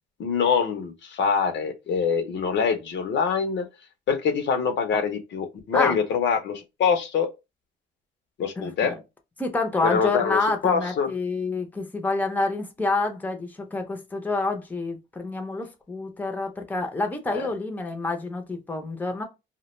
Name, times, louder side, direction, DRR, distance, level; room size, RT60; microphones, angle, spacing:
voice 1, 0.2-3.7 4.1-7.3 8.4-9.0 9.8-11.1 17.3-17.5, left 6 dB, 65° left, 0.6 m, -24 dB
voice 2, 8.6-8.9 9.4-19.2, left 3 dB, 10° left, 0.5 m, -28 dB
2.2 x 2.1 x 3.0 m
cardioid pair, 90°, 20 cm